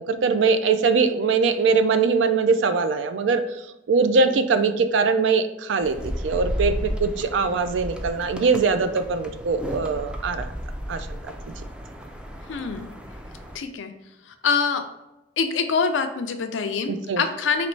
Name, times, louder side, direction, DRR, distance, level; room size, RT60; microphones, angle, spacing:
voice 1, 0.0-3.4 3.9-10.5 10.9-11.1 16.9-17.2, right 4 dB, 75° right, 9 dB, 0.4 m, -22 dB
sound 1, 5.8-13.6, equal, 5° right, 0.3 m, -33 dB
voice 2, 12.5-12.9 13.5-13.9 14.3-14.8 15.4-17.7, left 5 dB, 85° left, 7 dB, 0.5 m, -25 dB
4.1 x 3.0 x 3.2 m, 0.94 s
head